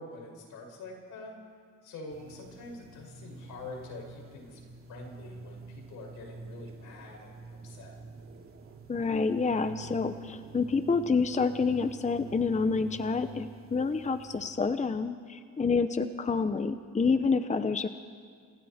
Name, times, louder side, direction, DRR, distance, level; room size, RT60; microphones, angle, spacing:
voice 1, 0.0-1.3 1.8-4.6 4.9-7.9, left 2 dB, 85° left, 0 dB, 6.0 m, -45 dB
sound 1, 2.1-14.5, right 4 dB, 45° right, 2.8 m, -48 dB
voice 2, 8.9-17.9, left 4 dB, 25° left, 10 dB, 0.9 m, -28 dB
29.5 x 27.0 x 4.4 m, 2.2 s
cardioid pair, 90°, 30 cm